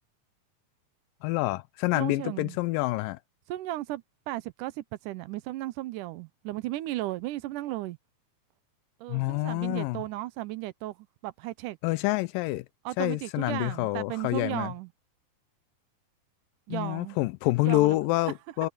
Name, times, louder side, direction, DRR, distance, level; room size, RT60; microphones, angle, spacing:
voice 1, 1.2-3.2 9.1-10.0 11.8-12.7 13.0-14.7 16.7-18.7, left 19 dB, 85° left, 2.2 m, -27 dB
voice 2, 1.9-2.6 3.5-8.0 9.0-11.8 12.9-14.9 16.7-17.2 17.6-18.0, right 16 dB, 75° right, 2.1 m, -35 dB
omnidirectional pair, 4.0 m